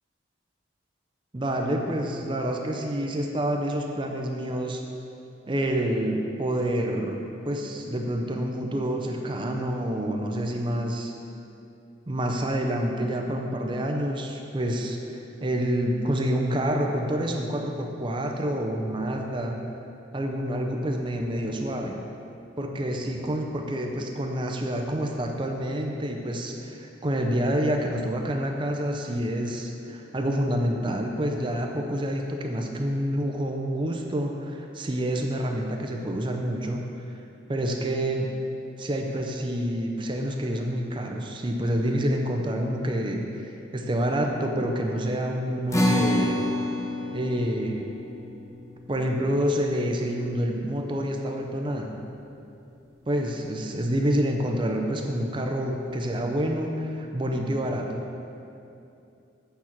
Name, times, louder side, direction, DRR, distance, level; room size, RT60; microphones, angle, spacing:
voice 1, 1.3-4.8 5.5-11.1 12.1-19.6 20.1-22.0 22.6-36.8 37.5-38.3 38.8-46.5 47.1-47.9 48.9-52.0 53.1-58.1, equal, 25° right, 2 dB, 0.5 m, -28 dB
sound 1, 45.7-52.3, left 1 dB, 15° left, 0.6 m, -30 dB
8.6 x 4.6 x 5.7 m, 2.7 s
head